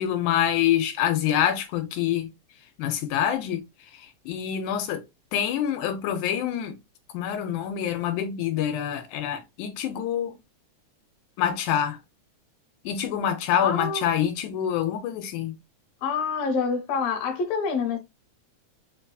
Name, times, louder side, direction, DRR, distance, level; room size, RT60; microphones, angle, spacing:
voice 1, 0.0-2.3 2.8-3.6 4.3-5.0 5.3-6.8 7.1-10.3 11.4-12.0 12.9-15.6, left 10 dB, 85° left, 2.0 m, -26 dB
voice 2, 13.6-14.1 16.0-18.0, left 5 dB, 65° left, 1.9 m, -26 dB
4.6 x 2.6 x 2.3 m
omnidirectional pair, 3.4 m